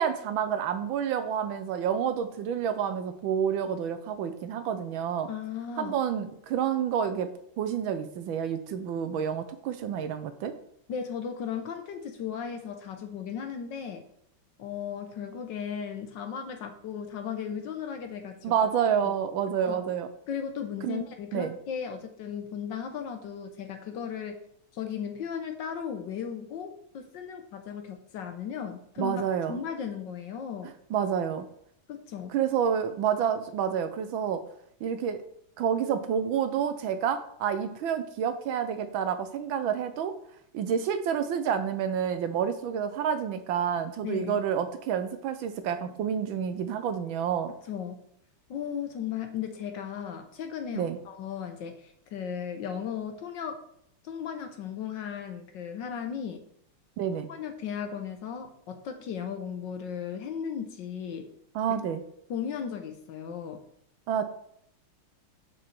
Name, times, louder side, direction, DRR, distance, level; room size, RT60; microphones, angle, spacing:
voice 1, 0.0-5.3 5.8-7.3 7.6-10.5 18.4-20.1 20.8-21.0 21.3-21.5 29.0-29.6 30.9-31.5 32.3-34.4 34.8-35.2 35.6-40.1 40.5-47.5 50.7-51.0 57.0-57.3 61.5-62.0 64.1-64.2, right 8 dB, 70° right, 10 dB, 1.3 m, -29 dB
voice 2, 5.3-6.0 10.9-14.0 14.6-18.4 19.0-19.1 19.7-19.9 20.3-24.4 24.7-29.2 29.5-30.7 31.9-32.4 44.0-44.4 47.7-48.0 48.5-53.6 54.0-56.4 57.3-61.3 62.3-63.6, left 7 dB, 65° left, 6 dB, 1.3 m, -36 dB
6.6 x 6.2 x 4.5 m, 0.70 s
omnidirectional pair, 2.4 m